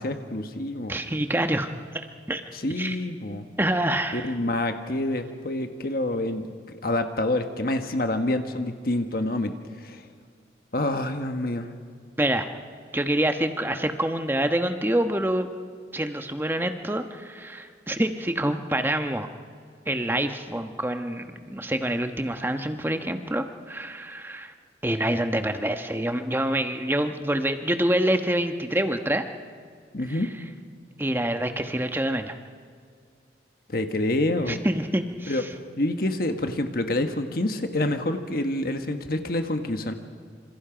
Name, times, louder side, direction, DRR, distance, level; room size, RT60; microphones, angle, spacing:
voice 1, 0.0-0.9 2.5-3.5 4.1-6.4 6.8-9.5 9.8-10.0 10.7-11.7 29.9-30.3 33.7-34.6 35.3-35.4 35.8-39.9, left 1 dB, 50° left, 6 dB, 1.4 m, -27 dB
voice 2, 0.9-2.4 2.8-3.0 3.6-4.3 12.2-12.5 12.9-15.5 15.9-19.3 19.9-24.5 24.8-29.3 30.1-30.2 31.0-32.3 34.5-35.5, right 1 dB, 10° right, 7 dB, 1.1 m, -26 dB
27.5 x 27.0 x 5.1 m, 2.1 s
head